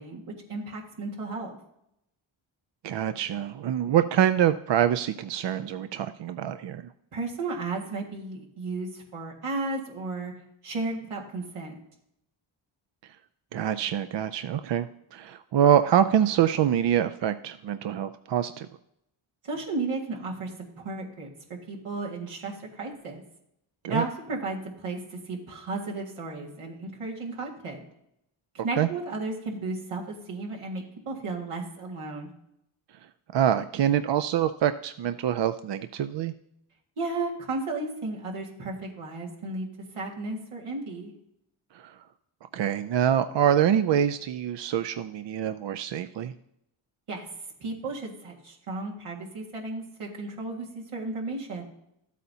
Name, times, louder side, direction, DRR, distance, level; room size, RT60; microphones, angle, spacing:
voice 1, 0.0-1.6 7.1-10.3 10.6-11.8 19.4-20.5 20.8-21.3 21.7-23.2 23.9-25.0 25.3-27.9 28.6-32.3 37.0-39.7 39.9-41.1 47.1-47.2 47.6-51.6, right 3 dB, 85° right, -2 dB, 1.9 m, -34 dB
voice 2, 2.8-6.8 13.5-18.7 23.8-24.0 28.8-28.9 33.3-36.3 41.7-41.9 42.5-46.3, right 10 dB, 60° right, 10 dB, 0.5 m, -25 dB
13.0 x 8.4 x 2.8 m, 0.79 s
cardioid pair, 60°, 50 cm